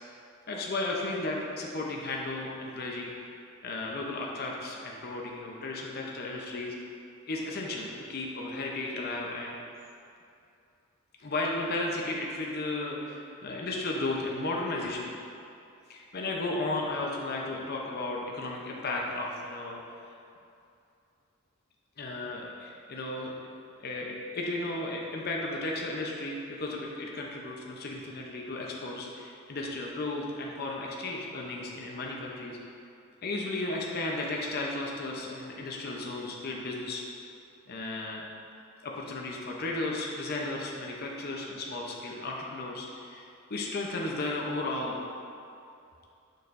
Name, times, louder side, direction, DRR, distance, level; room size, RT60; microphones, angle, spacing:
voice 1, 0.5-6.7 7.3-9.6 11.2-15.1 15.9-19.8 22.0-23.3 23.8-32.6 33.2-37.0 37.7-38.2 38.8-45.0, left 2 dB, 45° left, -2 dB, 0.6 m, -34 dB
6.7 x 6.5 x 2.5 m, 2.6 s
head